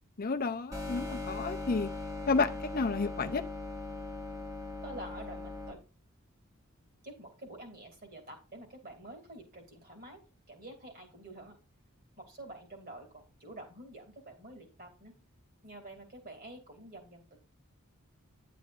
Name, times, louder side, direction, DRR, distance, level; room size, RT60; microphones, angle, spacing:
voice 1, 0.2-1.9 2.3-3.4, left 4 dB, 40° left, 0.5 m, -31 dB
sound 1, 0.7-5.7, left 2 dB, 15° right, 1.4 m, -39 dB
voice 2, 4.8-5.8 7.0-10.2 10.5-11.5 12.2-15.1 15.6-17.4, right 1 dB, 40° right, 2.6 m, -48 dB
10.5 x 8.5 x 2.5 m
head